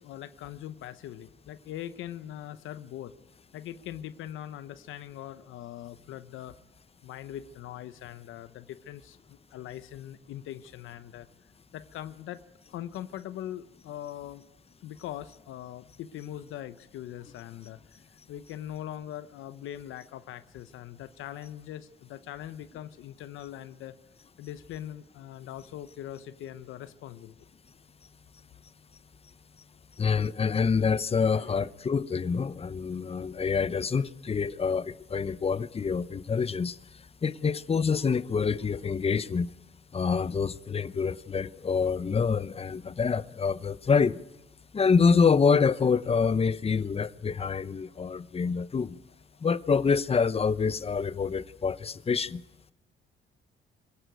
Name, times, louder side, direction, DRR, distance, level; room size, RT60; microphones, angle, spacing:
voice 1, 0.0-3.1 3.5-6.6 7.0-11.3 11.7-14.4 14.8-17.8 18.1-24.0 24.4-27.3 31.3-31.6, left 11 dB, 85° left, 0.9 m, -41 dB
voice 2, 30.0-36.8 37.2-39.5 39.9-44.2 44.7-49.0 49.4-52.4, left 5 dB, 30° left, 0.8 m, -26 dB
24.5 x 17.0 x 9.2 m
cardioid pair, 90°, 20 cm